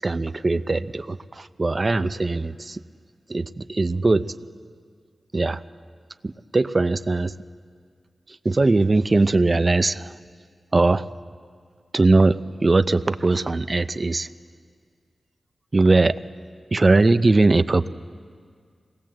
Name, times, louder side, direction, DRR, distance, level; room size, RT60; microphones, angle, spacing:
voice 1, 0.0-2.8 3.3-4.4 5.3-5.6 6.2-7.3 8.3-10.1 10.7-11.1 11.9-14.3 15.7-16.2 16.7-17.9, right 3 dB, 30° right, 12 dB, 0.5 m, -20 dB
26.0 x 18.5 x 7.6 m, 2.1 s
wide cardioid pair, 135°, 0 cm